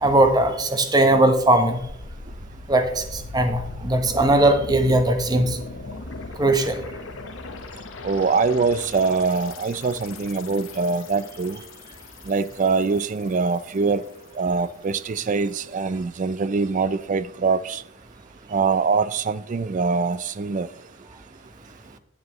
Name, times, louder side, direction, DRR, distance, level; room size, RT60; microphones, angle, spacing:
voice 1, 0.0-1.8 2.7-5.6 6.4-6.8, right 1 dB, 20° right, 0.9 m, -19 dB
sound 1, 1.8-14.4 14.6-14.7, left 3 dB, 75° left, 0.9 m, -39 dB
voice 2, 8.0-11.6 12.3-14.1 14.4-17.8 18.5-20.7, right 4 dB, 40° right, 0.3 m, -23 dB
10.0 x 7.7 x 3.0 m
head